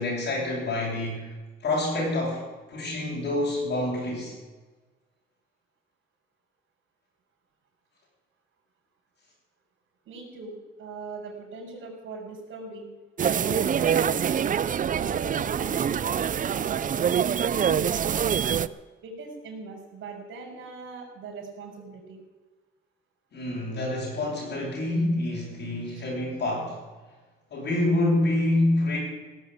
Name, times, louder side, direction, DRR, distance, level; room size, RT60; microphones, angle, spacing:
voice 1, 0.0-1.3 1.6-2.4 2.7-4.3 23.3-26.8 27.5-29.0, left 1 dB, 60° left, -5 dB, 7.3 m, -27 dB
voice 2, 10.0-12.9 13.4-18.6 19.0-22.2 25.9-26.0, right 4 dB, 80° right, -5 dB, 4.9 m, -40 dB
sound 1, 13.2-18.7, right 8 dB, 40° right, 0.6 m, -25 dB
17.0 x 8.0 x 9.8 m, 1.3 s
cardioid pair, 90°, 20 cm